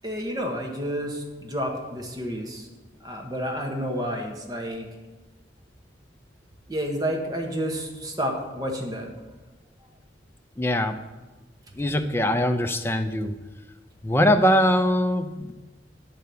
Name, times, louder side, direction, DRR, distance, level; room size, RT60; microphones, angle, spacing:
voice 1, 0.0-2.7 3.0-4.9 6.7-9.1, equal, 20° right, 1 dB, 1.1 m, -30 dB
voice 2, 10.6-11.0 11.8-13.3 14.0-15.5, equal, 15° left, 6 dB, 0.5 m, -22 dB
9.4 x 4.5 x 6.9 m, 1.2 s
head